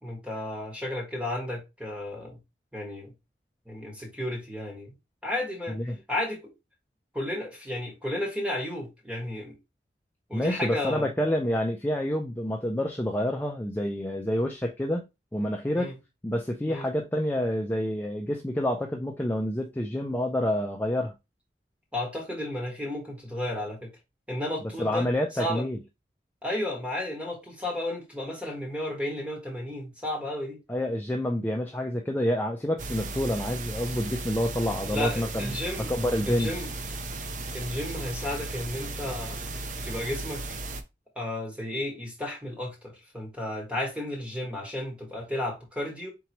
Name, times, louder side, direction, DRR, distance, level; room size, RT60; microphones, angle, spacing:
voice 1, 0.0-2.4 2.7-3.1 3.6-4.9 5.2-5.8 6.1-6.5 7.1-9.5 10.3-11.1 15.7-16.0 16.7-16.9 21.9-23.9 24.3-25.1 25.4-25.6 26.4-30.6 34.9-35.9 36.3-36.7 37.5-39.4 39.9-40.4 41.1-46.1, left 1 dB, 5° right, 1.5 m, -33 dB
voice 2, 10.3-15.0 15.3-15.9 16.2-21.1 24.8-25.8 30.7-35.5 35.9-36.6, left 1 dB, 10° left, 0.4 m, -28 dB
sound 1, 32.8-40.8, right 2 dB, 45° right, 0.5 m, -35 dB
4.5 x 3.8 x 3.0 m
head